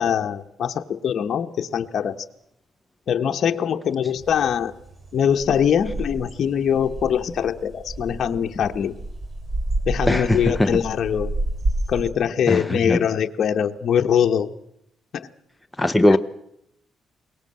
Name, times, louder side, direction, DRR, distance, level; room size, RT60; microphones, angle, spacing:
voice 1, 0.0-2.2 3.1-4.7 5.1-8.9 9.9-11.3 11.9-14.5 15.1-15.3 16.1-16.2, left 8 dB, 60° left, 1.1 m, -22 dB
sound 1, 4.2-12.1, right 1 dB, 35° right, 3.4 m, -30 dB
voice 2, 10.1-10.8 12.5-13.0 15.8-16.2, left 1 dB, 10° left, 0.8 m, -19 dB
22.0 x 18.5 x 7.7 m
cardioid pair, 90°, 0 cm